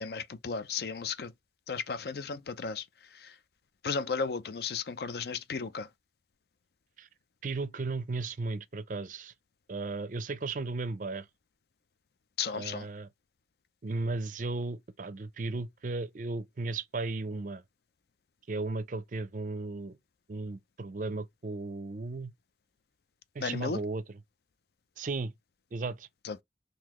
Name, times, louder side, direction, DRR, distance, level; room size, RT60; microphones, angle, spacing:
voice 1, 0.0-1.3 1.7-2.9 3.1-3.3 3.8-5.9 12.4-12.9 23.4-23.8 26.2-26.4, left 5 dB, 60° left, 0.5 m, -34 dB
voice 2, 7.4-9.3 9.7-11.3 12.5-13.1 13.8-17.6 18.5-20.0 20.3-22.3 23.3-24.2 25.0-25.3 25.7-26.1, right 3 dB, 45° right, 0.5 m, -35 dB
3.9 x 2.7 x 2.9 m
head